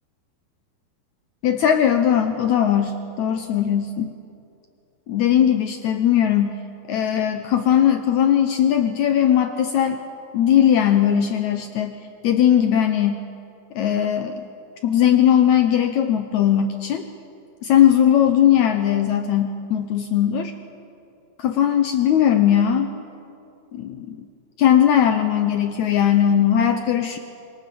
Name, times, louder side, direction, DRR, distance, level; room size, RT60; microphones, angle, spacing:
voice 1, 1.4-4.1 5.1-6.6 6.9-10.0 10.3-11.9 12.2-13.2 13.7-14.4 14.8-17.0 17.6-20.5 21.4-22.9 23.7-24.2 24.6-27.2, left 10 dB, 85° left, 7 dB, 1.6 m, -19 dB
26.0 x 22.0 x 7.0 m, 2.6 s
omnidirectional pair, 4.5 m